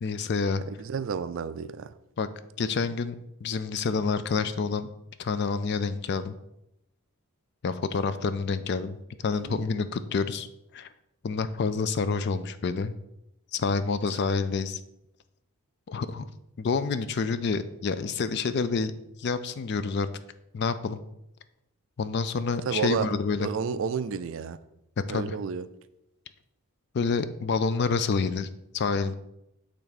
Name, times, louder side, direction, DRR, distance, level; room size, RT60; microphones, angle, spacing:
voice 1, 0.0-0.6 2.2-2.3 2.6-3.2 3.4-4.9 5.2-6.3 7.6-10.5 10.7-10.9 11.2-12.9 13.5-14.8 15.9-16.2 16.6-18.9 19.2-20.1 20.5-21.0 22.0-23.5 25.1-25.4 26.9-28.5 28.7-29.1, left 4 dB, 50° left, 12 dB, 0.3 m, -28 dB
voice 2, 0.7-1.9 9.4-9.6 22.6-23.1 23.4-24.6 25.1-25.7, right 6 dB, 55° right, 13 dB, 0.3 m, -31 dB
8.7 x 3.4 x 4.0 m, 0.84 s
head